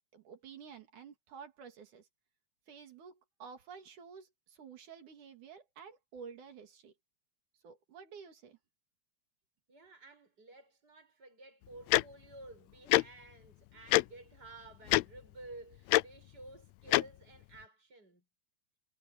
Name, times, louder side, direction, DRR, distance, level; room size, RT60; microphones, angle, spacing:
voice 1, 0.1-2.1 2.7-6.9 7.6-8.6, right 6 dB, 80° right, 3.8 m, -51 dB
voice 2, 9.7-18.2, right 2 dB, 30° right, 8.4 m, -53 dB
Tick-tock, 11.9-12.0 12.9-13.0 13.9-14.0 14.9-15.0 15.9-16.0 16.9-17.0, left 18 dB, 80° left, 1.6 m, -24 dB
omnidirectional pair, 3.5 m